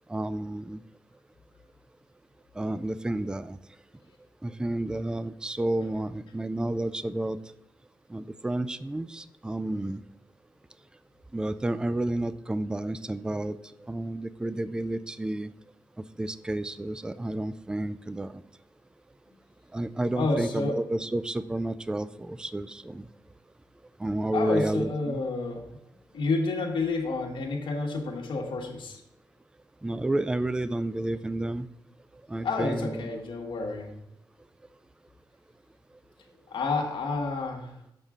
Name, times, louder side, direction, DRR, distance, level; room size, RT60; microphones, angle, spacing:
voice 1, 0.1-0.8 2.6-3.6 4.4-7.4 8.1-10.0 11.3-15.5 16.2-18.4 19.7-23.1 24.0-25.2 29.8-31.7 32.3-33.1, right 1 dB, 10° right, 14 dB, 0.3 m, -31 dB
voice 2, 20.2-20.8 24.3-25.8 26.1-29.0 32.4-33.9 36.5-37.7, left 3 dB, 75° left, 0 dB, 1.3 m, -29 dB
6.7 x 5.5 x 3.6 m, 0.80 s
cardioid pair, 90°, 8 cm